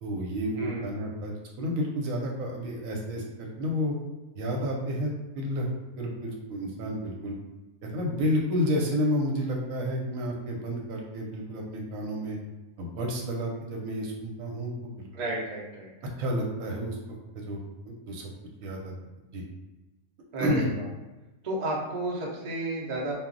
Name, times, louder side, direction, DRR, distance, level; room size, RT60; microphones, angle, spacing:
voice 1, 0.0-4.0 4.4-5.7 6.0-7.4 7.9-12.4 12.8-15.1 16.2-17.0 17.3-17.6 17.9-18.3 18.6-18.9 19.3-19.4 20.4-20.7, equal, 85° right, -1 dB, 1.0 m, -30 dB
voice 2, 15.1-15.9 20.3-20.9 21.4-23.1, right 1 dB, 45° right, -3 dB, 0.6 m, -32 dB
2.3 x 2.0 x 3.7 m, 1.1 s
omnidirectional pair, 1.4 m